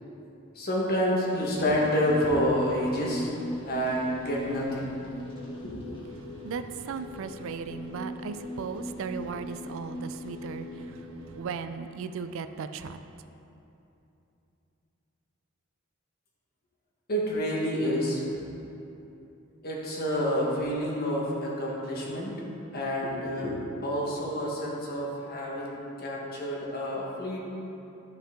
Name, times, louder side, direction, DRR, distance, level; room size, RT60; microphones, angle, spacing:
voice 1, 0.5-3.3 3.6-4.9 5.6-5.9 17.1-18.2 19.6-22.4 22.7-27.4, equal, 50° left, -3 dB, 1.6 m, -28 dB
sound 1, 1.2-11.4, equal, 25° left, 1.9 m, -40 dB
voice 2, 6.4-11.1 11.3-13.0, right 5 dB, 70° right, 10 dB, 0.4 m, -37 dB
12.0 x 5.6 x 3.7 m, 2.9 s
head